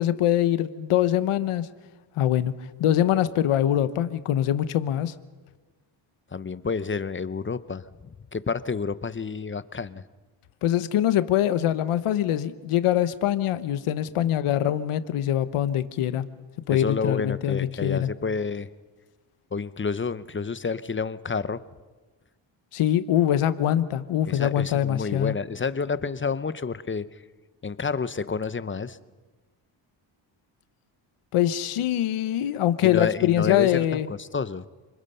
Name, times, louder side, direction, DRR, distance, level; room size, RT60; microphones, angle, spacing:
voice 1, 0.0-1.7 2.2-2.5 2.8-5.1 10.6-16.3 16.7-18.1 22.7-25.3 31.3-34.1, left 11 dB, 80° left, 13 dB, 1.1 m, -23 dB
voice 2, 6.3-10.0 16.7-18.7 19.5-21.6 24.3-27.1 27.6-29.0 32.8-33.8 34.2-34.6, left 5 dB, 25° left, 15 dB, 0.8 m, -29 dB
28.5 x 21.0 x 5.7 m, 1.3 s
cardioid pair, 80°, 50 cm